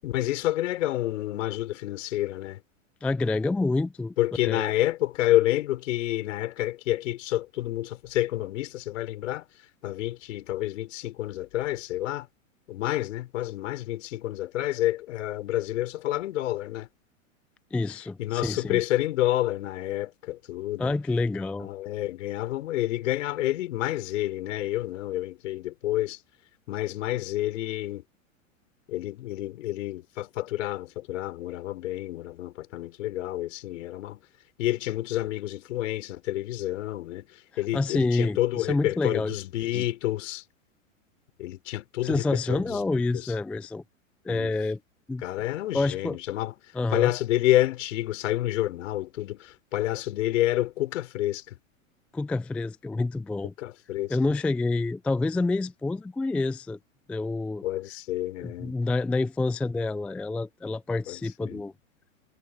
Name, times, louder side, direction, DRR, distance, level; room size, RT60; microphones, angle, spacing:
voice 1, 0.0-2.6 4.2-9.4 9.8-12.3 12.7-16.9 18.2-20.9 21.6-26.2 26.7-28.0 28.9-34.2 34.6-37.3 37.6-40.4 41.4-42.8 43.1-43.3 44.3-44.5 45.2-46.5 46.9-51.6 53.6-54.2 57.6-58.7 61.1-61.6, left 15 dB, 65° left, 6.2 m, -29 dB
voice 2, 3.0-4.1 4.4-4.7 17.7-18.8 20.8-21.7 37.7-39.3 39.7-39.8 42.0-43.8 44.2-44.8 45.1-45.2 45.7-46.2 46.7-47.1 52.1-53.5 54.1-56.8 57.1-57.6 58.4-61.7, left 3 dB, 5° left, 0.4 m, -28 dB
hypercardioid pair, 110°, 41 cm